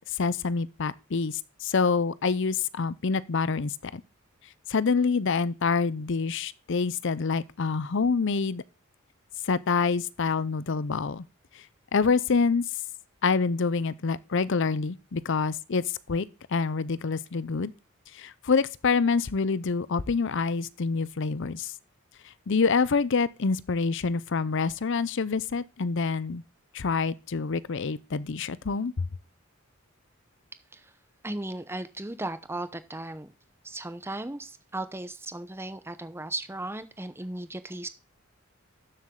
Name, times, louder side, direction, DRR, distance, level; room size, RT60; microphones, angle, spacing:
voice 1, 0.1-4.0 4.7-8.6 9.4-11.2 11.9-12.6 13.2-17.7 18.1-21.7 22.5-26.4 26.7-29.1, left 4 dB, 60° left, 0.6 m, -26 dB
voice 2, 31.2-33.3 33.6-37.9, right 2 dB, 10° right, 0.8 m, -36 dB
12.5 x 7.4 x 3.8 m
head